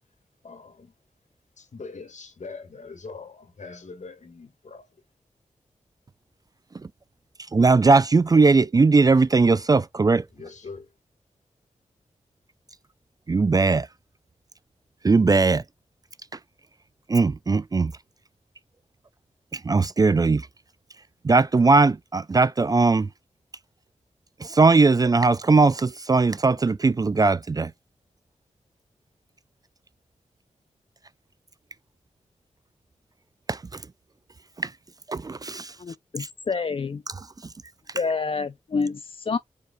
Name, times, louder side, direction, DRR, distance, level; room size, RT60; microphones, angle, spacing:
voice 1, 0.4-0.9 1.6-5.0 10.3-10.9, left 4 dB, 70° left, 1.7 m, -42 dB
voice 2, 7.5-10.2 13.3-13.9 15.0-15.6 17.1-17.9 19.5-20.5 21.2-23.1 24.4-27.7 33.5-33.6 34.6-34.7 35.1-35.7, right 3 dB, 30° right, 0.3 m, -19 dB
voice 3, 35.8-37.0 37.9-39.4, left 4 dB, 45° left, 0.4 m, -28 dB
4.7 x 4.6 x 2.3 m
cardioid pair, 70°, 13 cm